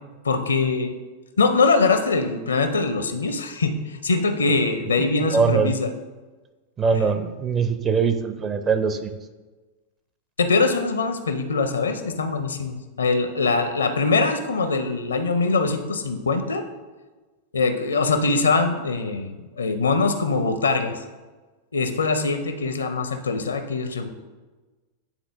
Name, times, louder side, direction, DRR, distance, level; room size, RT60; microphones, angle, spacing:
voice 1, 0.2-0.9 1.4-5.9 10.4-16.6 17.5-21.0 21.7-24.1, left 4 dB, 70° left, 8 dB, 0.6 m, -22 dB
voice 2, 5.0-5.7 6.8-9.1, right 5 dB, 25° right, 9 dB, 0.5 m, -22 dB
9.0 x 3.7 x 3.5 m, 1.2 s
figure-of-eight pair, 90°, 0 cm